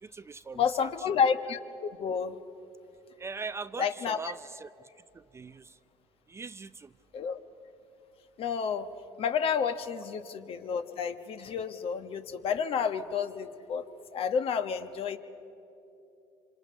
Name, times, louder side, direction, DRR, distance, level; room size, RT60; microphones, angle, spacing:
voice 1, 0.0-0.9 3.2-4.7 5.1-5.8 6.3-6.9, right 4 dB, 20° right, 14 dB, 0.5 m, -41 dB
voice 2, 0.5-2.3 3.8-4.3 7.1-7.4 8.4-8.9 9.2-13.8 14.1-15.2, left 6 dB, 55° left, 9 dB, 1.2 m, -30 dB
26.5 x 26.0 x 5.3 m, 2.9 s
supercardioid pair, 80°, 12 cm